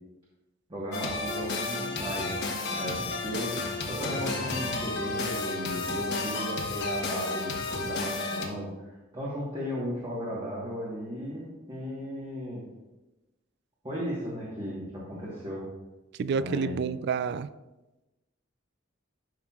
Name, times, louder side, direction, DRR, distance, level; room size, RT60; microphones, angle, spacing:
voice 1, 0.7-3.5 3.9-12.6 13.8-15.6 16.3-16.8, equal, 25° right, -6 dB, 1.4 m, -36 dB
sound 1, 0.9-8.5, left 3 dB, 60° left, 1.1 m, -32 dB
voice 2, 16.2-17.5, right 6 dB, 55° right, 15 dB, 0.3 m, -29 dB
11.5 x 5.8 x 2.4 m, 1.1 s
head